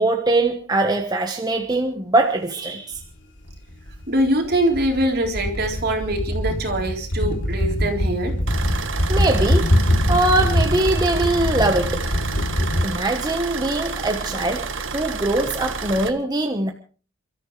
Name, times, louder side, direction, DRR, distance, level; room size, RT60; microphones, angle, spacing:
voice 1, 0.0-3.0 9.1-9.7 10.1-12.4 12.8-16.7, right 2 dB, 20° right, 3 dB, 1.3 m, -22 dB
sound 1, 3.0-3.1 3.4-12.8, equal, 65° left, 3.2 m, -23 dB
voice 2, 4.1-8.4, right 1 dB, 55° right, 2 dB, 3.9 m, -23 dB
sound 2, 8.5-16.1, right 4 dB, 85° right, 1.6 m, -30 dB
29.0 x 13.5 x 3.3 m, 0.38 s
head